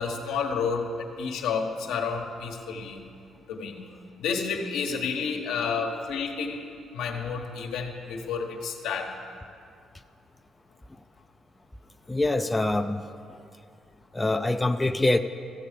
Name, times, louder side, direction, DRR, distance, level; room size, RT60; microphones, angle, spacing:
voice 1, 0.0-3.0 3.5-3.8 4.2-6.6 6.9-9.2, left 5 dB, 90° left, 2 dB, 1.2 m, -30 dB
voice 2, 12.1-13.0 14.1-15.2, left 2 dB, 15° left, 7 dB, 0.4 m, -24 dB
15.0 x 7.4 x 5.1 m, 2.4 s
cardioid pair, 90°, 0 cm